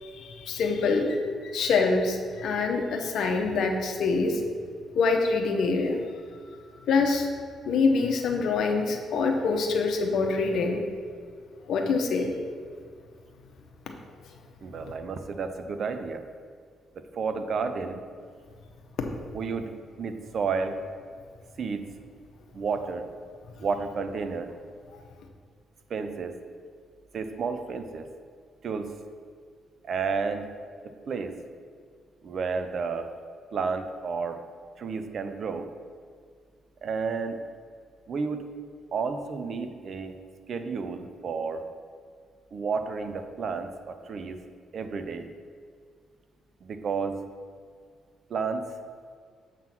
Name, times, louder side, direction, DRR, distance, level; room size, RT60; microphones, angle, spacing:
voice 1, 0.0-4.4 4.9-6.0 6.9-7.3 7.7-10.8 11.7-12.3, left 4 dB, 70° left, 3 dB, 1.0 m, -25 dB
voice 2, 14.6-16.2 17.1-18.0 19.3-20.8 21.6-21.8 22.5-23.1 23.6-24.5 25.9-26.4 27.1-28.1 28.6-28.9 29.8-30.5 31.1-31.4 32.2-33.1 33.5-34.4 34.8-35.7 36.8-37.4 38.1-38.5 38.9-40.2 40.5-41.7 42.5-44.4 44.7-45.3 46.6-47.2 48.3-48.7, right 5 dB, 55° right, 8 dB, 0.6 m, -31 dB
7.4 x 3.8 x 6.0 m, 2.1 s
cardioid pair, 90°, 0 cm